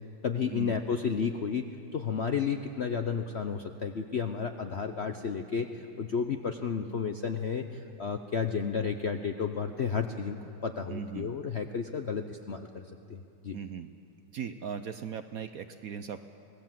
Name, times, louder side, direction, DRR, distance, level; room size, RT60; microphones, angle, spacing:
voice 1, 0.2-1.7 1.9-10.4 10.6-12.8 13.1-13.6, left 6 dB, 60° left, 6 dB, 0.7 m, -32 dB
voice 2, 10.9-11.4 13.5-13.9 14.3-16.2, right 7 dB, 65° right, 9 dB, 0.9 m, -38 dB
25.0 x 18.0 x 7.5 m, 2.6 s
omnidirectional pair, 2.0 m